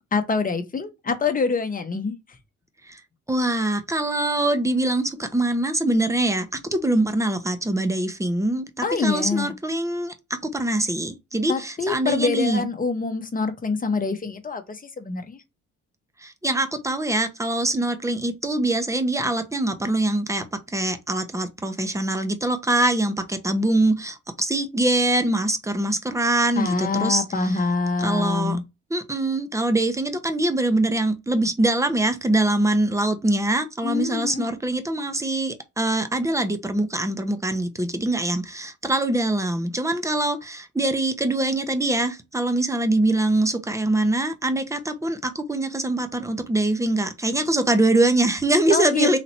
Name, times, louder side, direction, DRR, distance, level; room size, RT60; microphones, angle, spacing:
voice 1, 0.1-2.1 8.8-9.5 11.5-15.4 26.6-28.6 33.8-34.5 48.7-49.2, left 4 dB, 30° left, 1.1 m, -25 dB
voice 2, 3.3-10.1 10.4-12.7 16.2-27.6 28.0-28.6 28.9-49.2, right 1 dB, 10° right, 0.9 m, -23 dB
4.1 x 3.0 x 4.3 m
cardioid pair, 90°, 30 cm